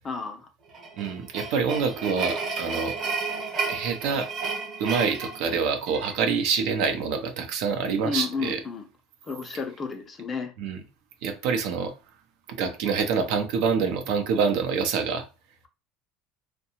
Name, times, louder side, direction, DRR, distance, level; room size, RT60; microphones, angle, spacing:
voice 1, 0.0-0.5 8.0-8.8 9.2-10.5, left 4 dB, 25° left, 6 dB, 0.4 m, -32 dB
sound 1, 0.7-6.2, right 4 dB, 40° right, 0.9 m, -32 dB
voice 2, 1.0-3.0 3.7-4.3 4.8-8.6 10.6-10.8 11.2-11.9 12.5-15.2, right 5 dB, 65° right, 6 dB, 0.6 m, -26 dB
2.7 x 2.2 x 2.8 m, 0.31 s
cardioid pair, 140°, 0 cm